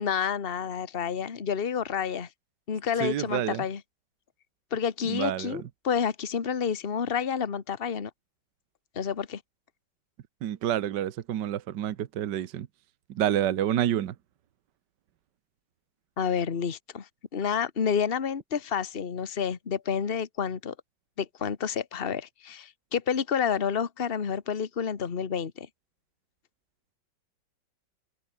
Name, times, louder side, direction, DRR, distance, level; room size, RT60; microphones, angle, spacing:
voice 1, 0.0-2.3 2.7-3.8 4.7-8.1 8.9-9.4 16.2-20.7 21.2-25.7, left 7 dB, 35° left, 1.5 m, -29 dB
voice 2, 3.0-3.6 5.1-5.6 10.4-12.7 13.1-14.1, right 11 dB, 70° right, 1.6 m, -28 dB
omnidirectional pair, 1.9 m